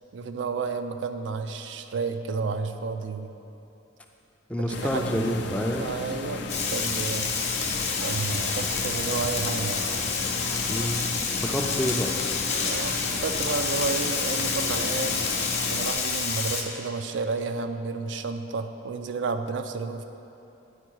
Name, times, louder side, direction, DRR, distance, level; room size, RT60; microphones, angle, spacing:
voice 1, 0.1-3.3 4.6-7.5 8.0-9.9 12.6-15.2 15.7-20.0, right 4 dB, 70° right, 8 dB, 0.4 m, -31 dB
voice 2, 4.5-5.9 10.7-11.0 11.4-12.2, equal, 5° left, 1 dB, 0.4 m, -28 dB
sound 1, 4.7-15.9, left 3 dB, 65° left, 0.5 m, -35 dB
Frying (food), 6.5-16.6, left 5 dB, 35° left, 0.8 m, -28 dB
9.8 x 4.7 x 4.6 m, 2.9 s
head